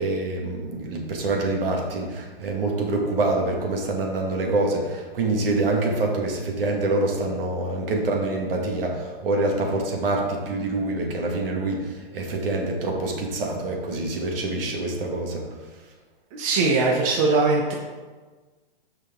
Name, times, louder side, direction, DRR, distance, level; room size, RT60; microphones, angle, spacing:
voice 1, 0.0-15.4, right 2 dB, 70° right, 0 dB, 2.3 m, -26 dB
voice 2, 16.3-17.7, right 3 dB, 35° right, -2 dB, 1.1 m, -21 dB
10.5 x 5.2 x 3.9 m, 1.3 s
hypercardioid pair, 150°, 30 cm